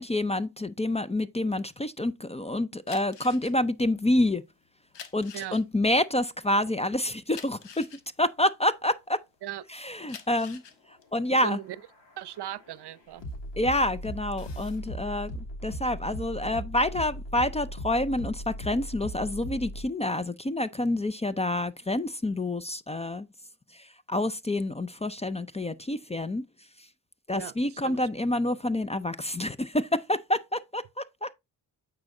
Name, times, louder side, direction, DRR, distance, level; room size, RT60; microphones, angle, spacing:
voice 1, 0.0-4.4 5.1-7.9 8.2-9.2 9.7-10.6 11.1-11.6 13.6-23.3 23.7-26.4 27.3-31.3, left 1 dB, 15° left, 0.5 m, -28 dB
sound 1, 2.8-9.4 9.9-13.7 14.1-14.9, left 7 dB, 70° left, 1.3 m, -48 dB
sound 2, 11.3-19.8, equal, 90° left, 2.9 m, -38 dB
voice 2, 11.4-11.8 12.2-13.2 27.3-27.5 27.8-28.0, right 12 dB, 65° right, 0.7 m, -37 dB
8.7 x 4.4 x 3.8 m
cardioid pair, 65°, 44 cm